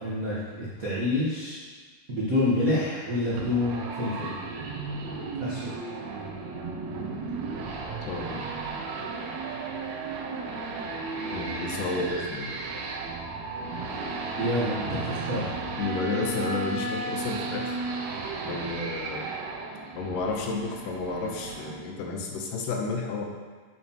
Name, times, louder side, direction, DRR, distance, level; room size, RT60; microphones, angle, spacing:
voice 1, 0.0-1.6 2.1-4.3 5.4-5.7 14.4-15.0 15.3-15.4, left 1 dB, 90° right, -8 dB, 0.7 m, -27 dB
sound 1, 3.3-21.7, right 3 dB, 70° right, 2.0 m, -34 dB
voice 2, 8.1-8.5 11.3-12.5 15.8-17.8 18.4-19.3 19.9-23.3, left 3 dB, 85° left, 1 dB, 2.5 m, -31 dB
8.2 x 7.2 x 3.0 m, 1.5 s
omnidirectional pair, 3.7 m